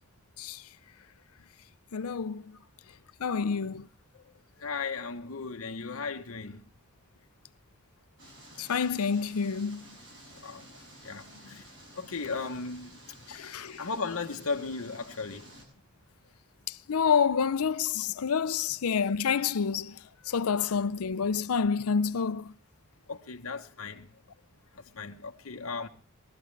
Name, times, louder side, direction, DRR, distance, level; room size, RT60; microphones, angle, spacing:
voice 1, 1.9-2.4 3.2-3.8 8.6-9.8 13.3-13.8 16.9-19.9 20.3-22.5, left 6 dB, 90° left, 0.6 m, -28 dB
voice 2, 4.6-6.6 10.4-10.7 11.0-11.6 11.9-13.0 13.4-15.5 18.5-18.6 23.1-24.1 25.0-25.9, left 4 dB, 75° left, 1.1 m, -36 dB
sound 1, 8.2-15.6, right 1 dB, 60° right, 7.7 m, -52 dB
21.5 x 13.0 x 3.3 m
head